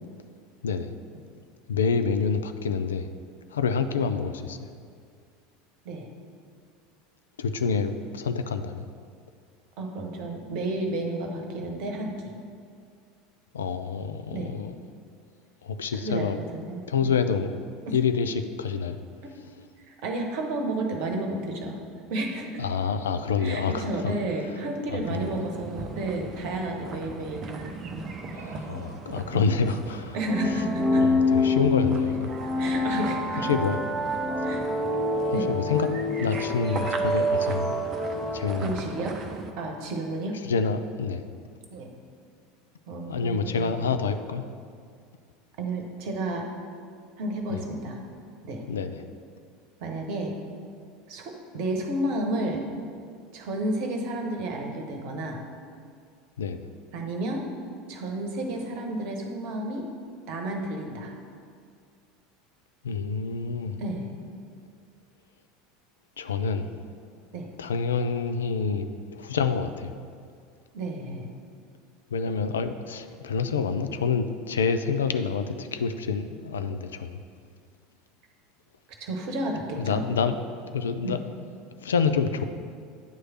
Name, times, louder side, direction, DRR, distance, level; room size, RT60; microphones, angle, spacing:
voice 1, 1.7-3.1 3.5-4.7 7.4-8.9 13.5-14.7 15.6-16.4 16.9-17.5 17.9-19.0 22.6-24.1 24.9-25.3 28.4-30.2 31.0-32.3 33.4-33.8 35.3-35.9 36.2-37.7 38.3-38.8 40.4-41.2 43.1-44.5 47.5-47.6 48.7-49.0 56.4-56.7 62.8-63.8 66.2-66.7 67.6-69.9 72.1-77.2 79.8-80.4 80.7-81.2 81.8-82.4, left 5 dB, 70° left, 9 dB, 0.3 m, -27 dB
voice 2, 9.8-12.3 14.3-14.6 16.0-17.1 19.2-19.3 19.9-21.8 22.1-22.5 23.4-27.5 29.3-29.6 30.1-31.1 32.6-33.5 34.4-34.7 35.3-35.5 38.6-39.2 39.6-40.4 41.7-41.9 42.9-43.7 45.6-46.5 47.2-48.0 48.4-48.6 49.8-50.4 51.1-52.6 53.3-55.4 56.9-57.5 57.9-59.9 60.3-61.1 63.8-64.1 67.3-67.5 70.7-71.3 79.0-80.0 81.0-81.2, right 1 dB, 55° right, 3 dB, 1.0 m, -31 dB
sound 1, 25.0-39.5, right 3 dB, 35° right, 0.6 m, -39 dB
sound 2, 30.3-38.9, left 2 dB, 10° right, 1.7 m, -26 dB
8.9 x 3.2 x 6.1 m, 2.2 s
figure-of-eight pair, 75°, 0 cm